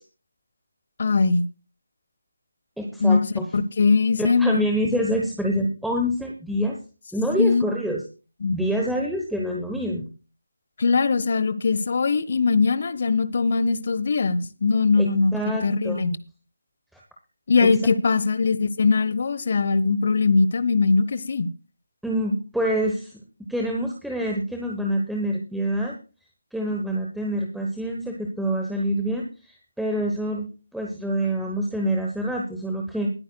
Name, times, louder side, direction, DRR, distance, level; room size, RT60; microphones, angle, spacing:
voice 1, 1.0-1.4 3.0-3.2 3.5-4.6 7.4-7.6 8.4-8.6 10.8-15.3 15.6-16.1 17.5-21.5, left 4 dB, 45° left, 16 dB, 1.0 m, -21 dB
voice 2, 2.8-3.5 4.2-6.7 7.1-8.0 8.5-10.0 15.0-15.1 15.3-16.2 16.9-17.0 17.6-17.7 22.0-23.2 23.5-25.9 26.5-33.1, equal, ahead, -1 dB, 1.0 m, -26 dB
21.0 x 9.0 x 2.3 m, 0.34 s
figure-of-eight pair, 155°, 0 cm